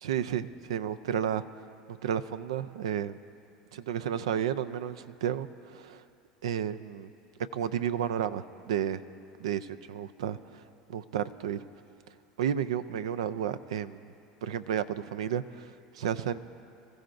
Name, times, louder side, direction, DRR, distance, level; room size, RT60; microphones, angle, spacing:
voice 1, 0.0-1.5 2.0-3.2 3.7-6.0 6.4-7.1 7.5-9.0 9.4-10.6 10.9-11.6 12.4-14.1 14.4-16.4, right 9 dB, 85° right, 13 dB, 0.5 m, -32 dB
25.5 x 15.0 x 2.6 m, 2.6 s
hypercardioid pair, 90°, 3 cm